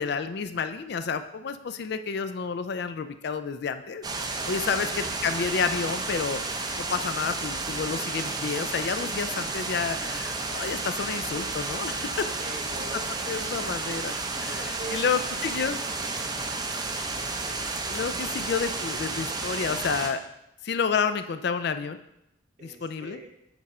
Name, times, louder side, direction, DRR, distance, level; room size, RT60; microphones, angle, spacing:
voice 1, 0.0-4.0 4.5-12.3 12.7-12.8 13.3-15.8 17.9-20.2 20.6-22.0 22.6-23.2, left 6 dB, 55° left, 10 dB, 0.4 m, -30 dB
sound 1, 4.0-20.1, right 3 dB, 20° right, 0.5 m, -32 dB
voice 2, 4.4-4.9 12.4-13.6 14.5-16.3 22.6-23.3, right 2 dB, 35° right, 3 dB, 1.0 m, -43 dB
8.1 x 4.8 x 4.2 m, 0.85 s
head